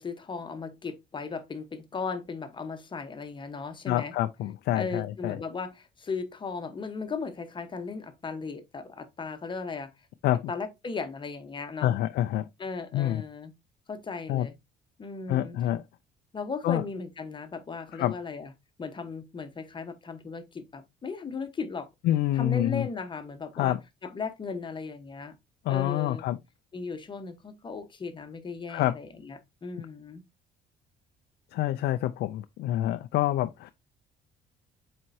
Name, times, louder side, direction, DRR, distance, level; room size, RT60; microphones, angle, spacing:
voice 1, 0.0-4.1 4.7-9.9 10.5-11.9 12.6-13.5 13.9-14.6 15.0-15.6 16.3-18.5 18.8-21.9 22.3-23.8 24.0-25.3 25.7-26.3 26.7-30.2, left 4 dB, 30° left, 1.2 m, -36 dB
voice 2, 3.9-5.4 10.2-10.4 11.8-12.5 12.9-13.2 14.3-14.5 15.3-15.8 16.6-16.8 17.9-18.1 22.0-22.9 23.6-23.8 25.6-26.4 28.7-28.9 31.5-33.7, left 13 dB, 75° left, 0.5 m, -27 dB
7.7 x 4.4 x 2.8 m
cardioid pair, 110°, 17 cm